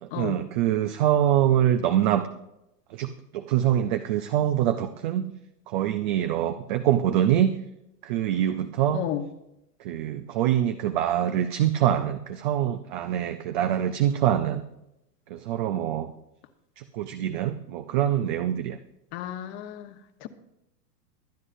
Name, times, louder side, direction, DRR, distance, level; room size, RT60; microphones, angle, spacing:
voice 1, 0.0-2.3 2.9-5.3 5.7-7.5 8.0-9.1 9.8-14.6 15.3-16.1 16.8-18.8, right 11 dB, 35° right, 9 dB, 0.4 m, -24 dB
voice 2, 8.9-9.3 19.1-20.0 20.2-20.3, left 12 dB, 40° left, 9 dB, 1.2 m, -32 dB
22.5 x 9.5 x 2.6 m, 0.87 s
hypercardioid pair, 135°, 48 cm